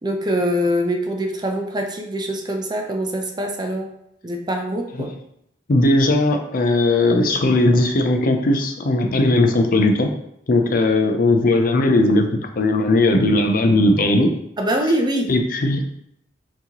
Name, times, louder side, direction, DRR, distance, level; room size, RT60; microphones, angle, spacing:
voice 1, 0.0-3.9 4.2-5.1 14.6-15.3, equal, 25° right, 3 dB, 0.5 m, -23 dB
voice 2, 5.7-10.1 10.5-12.3 12.6-14.3 15.3-15.8, left 2 dB, 50° left, 5 dB, 0.5 m, -17 dB
6.0 x 2.9 x 2.9 m, 0.75 s
head